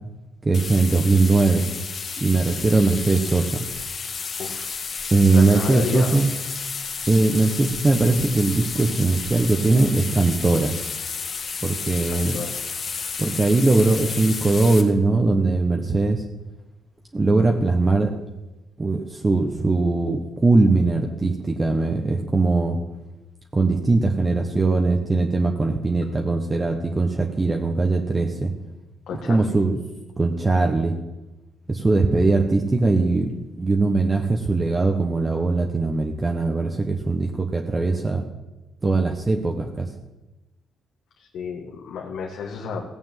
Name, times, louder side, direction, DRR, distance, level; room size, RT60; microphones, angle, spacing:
voice 1, 0.4-1.6 2.2-3.6 5.1-6.3 7.1-10.7 11.6-12.4 13.2-16.2 17.1-18.1 18.8-22.8 23.5-28.5 29.3-29.8 30.2-30.9 31.7-33.3 33.6-38.2 38.8-39.9, right 3 dB, 25° right, 3 dB, 1.3 m, -20 dB
sound 1, 0.5-14.8, left 5 dB, 45° left, 1.7 m, -32 dB
voice 2, 4.4-4.8 5.3-6.2 12.1-12.6 29.1-29.5 41.2-42.9, left 6 dB, 70° left, 1 dB, 1.6 m, -32 dB
16.0 x 7.2 x 7.6 m, 1.0 s
cardioid pair, 90°, 0 cm